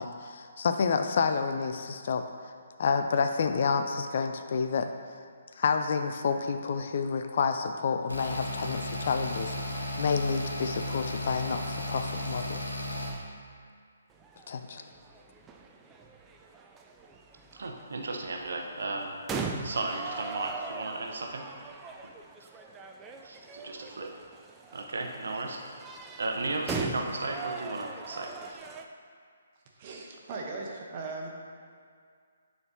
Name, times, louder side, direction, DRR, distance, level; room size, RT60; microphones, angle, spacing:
voice 1, 0.0-2.3 2.8-4.9 5.6-12.6 14.5-14.8, left 5 dB, 50° left, 7 dB, 0.4 m, -29 dB
sound 1, 8.1-13.1, left 1 dB, 85° left, 1.1 m, -35 dB
sound 2, 14.1-28.8, right 4 dB, 15° right, 0.4 m, -41 dB
voice 2, 17.5-19.1 19.6-21.5 23.2-24.1 24.7-25.6 26.2-28.6, right 2 dB, 65° right, 2 dB, 0.7 m, -35 dB
voice 3, 29.7-31.3, right 3 dB, 35° right, -1 dB, 1.0 m, -38 dB
9.6 x 4.3 x 2.8 m, 2.1 s
figure-of-eight pair, 135°, 0 cm